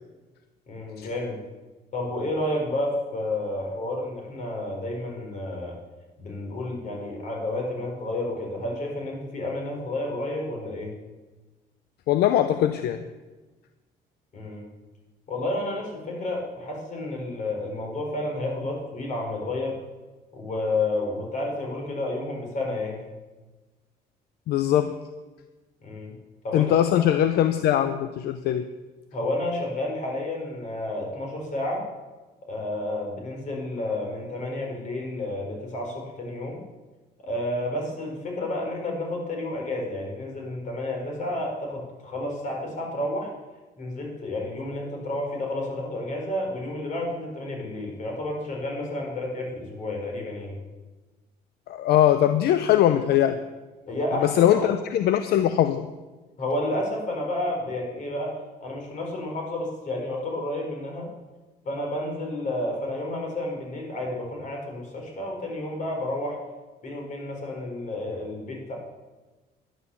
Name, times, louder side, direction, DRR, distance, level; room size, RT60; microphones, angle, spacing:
voice 1, 0.7-1.4 1.9-5.7 6.2-10.9 14.3-14.7 15.3-19.8 20.3-23.0 25.8-26.1 26.4-27.0 29.1-31.9 32.5-36.6 37.2-43.3 43.8-50.5 53.9-54.7 56.4-61.1 61.6-66.4 66.8-68.7, left 1 dB, 45° left, 0 dB, 4.7 m, -31 dB
voice 2, 12.1-13.0 24.5-25.0 26.5-28.7 51.7-53.4 54.2-55.9, left 11 dB, 70° left, 10 dB, 0.7 m, -21 dB
11.0 x 10.5 x 7.1 m, 1.2 s
cardioid pair, 110°, 17 cm